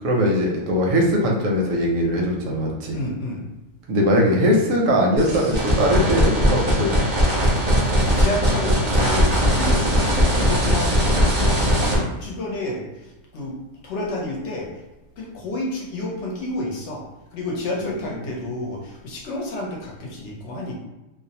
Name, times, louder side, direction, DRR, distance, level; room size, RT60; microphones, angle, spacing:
voice 1, 0.0-3.0 3.9-7.1, equal, 80° right, 0 dB, 1.0 m, -20 dB
voice 2, 2.9-3.4 7.9-13.6 13.8-14.7 15.2-17.0 17.3-20.7, left 1 dB, 65° left, -2 dB, 0.9 m, -30 dB
sound 1, 5.2-12.0, equal, 40° right, 0.6 m, -19 dB
2.5 x 2.0 x 2.7 m, 1.1 s
omnidirectional pair, 1.4 m